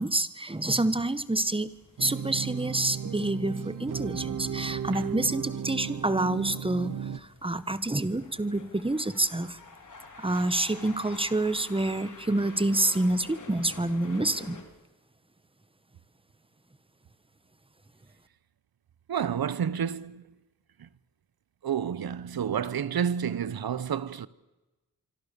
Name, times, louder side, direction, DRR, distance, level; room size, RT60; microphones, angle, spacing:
voice 1, 0.0-1.7 2.0-9.6 10.2-14.6, right 2 dB, 15° right, 1.4 m, -28 dB
sound 1, 0.7-14.6, left 4 dB, 55° left, 4.2 m, -50 dB
sound 2, 2.0-7.2, right 8 dB, 60° right, 1.1 m, -35 dB
voice 2, 19.1-20.2 20.8-20.9 21.6-24.3, right 8 dB, 85° right, 1.1 m, -30 dB
26.0 x 25.0 x 7.0 m
wide cardioid pair, 105°, 36 cm